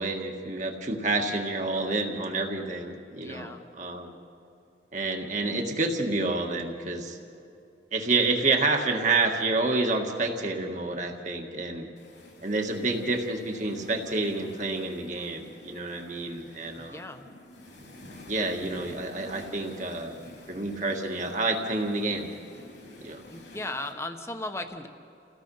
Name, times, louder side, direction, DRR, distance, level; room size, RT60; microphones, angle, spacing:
voice 1, 0.0-4.2 4.9-7.2 7.9-11.9 12.4-17.0 18.3-20.2 20.5-22.3 23.0-23.2, right 3 dB, 45° right, 2 dB, 1.8 m, -28 dB
voice 2, 3.1-3.6 16.8-17.3 23.3-24.9, left 2 dB, 15° left, 6 dB, 1.1 m, -36 dB
sound 1, 12.0-23.9, left 1 dB, 75° left, 3.9 m, -49 dB
29.0 x 16.5 x 5.6 m, 2.7 s
head